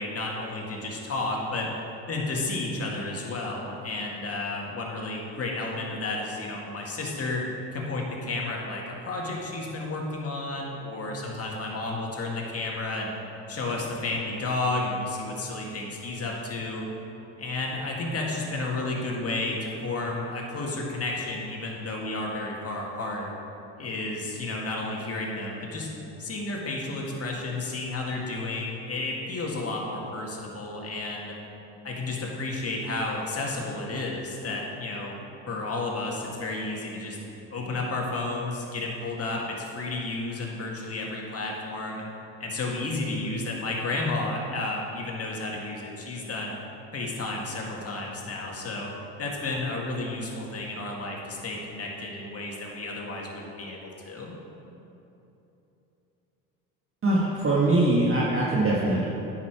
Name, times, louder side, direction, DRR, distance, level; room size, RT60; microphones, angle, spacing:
voice 1, 0.0-1.7 2.1-7.4 7.7-13.1 13.5-16.8 17.4-23.3 23.8-25.9 26.2-31.4 31.8-35.2 35.5-37.2 37.5-42.0 42.4-46.6 46.9-48.9 49.2-54.4, left 2 dB, 40° left, -1 dB, 2.0 m, -32 dB
voice 2, 57.0-59.1, right 2 dB, 35° right, -5 dB, 1.5 m, -22 dB
9.7 x 6.0 x 4.6 m, 3.0 s
supercardioid pair, 70°, 38 cm